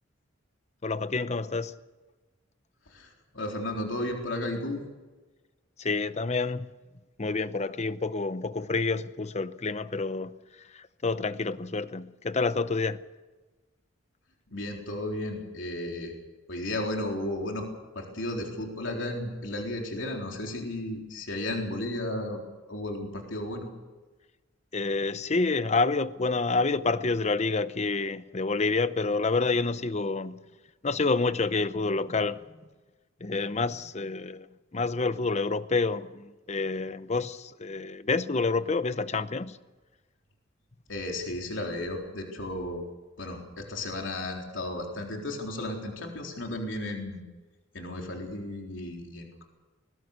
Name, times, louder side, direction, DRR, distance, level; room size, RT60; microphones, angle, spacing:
voice 1, 0.8-1.7 5.8-6.7 7.2-10.3 10.7-13.0 24.7-30.4 30.8-32.4 33.2-34.5 34.7-39.6, left 3 dB, 35° left, 0.8 m, -28 dB
voice 2, 2.9-4.8 14.5-16.1 16.5-17.7 17.9-22.4 22.7-23.7 40.9-42.8 43.2-47.2 47.7-49.4, left 1 dB, 70° left, 3.9 m, -34 dB
21.0 x 20.5 x 6.7 m
head